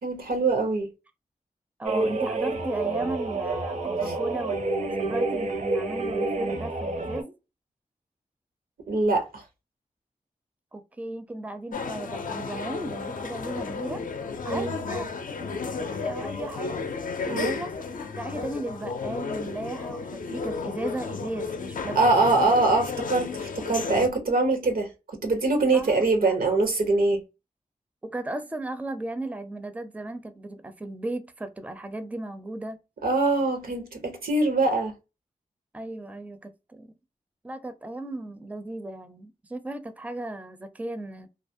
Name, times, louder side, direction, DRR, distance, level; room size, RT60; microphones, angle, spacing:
voice 1, 0.0-0.9 4.1-4.2 8.9-9.4 14.5-14.7 17.3-17.6 22.0-27.2 33.0-34.9, right 3 dB, 80° right, 0.8 m, -23 dB
voice 2, 1.8-7.3 10.7-14.1 14.4-16.9 17.3-17.7 18.1-22.0 22.4-22.6 25.7-26.0 28.0-32.8 35.7-36.9 37.4-41.3, right 2 dB, 10° right, 0.4 m, -36 dB
sound 1, 1.8-7.2, right 3 dB, 55° right, 0.6 m, -28 dB
sound 2, 11.7-24.1, left 4 dB, 65° left, 0.4 m, -33 dB
2.4 x 2.0 x 2.5 m
cardioid pair, 55°, 15 cm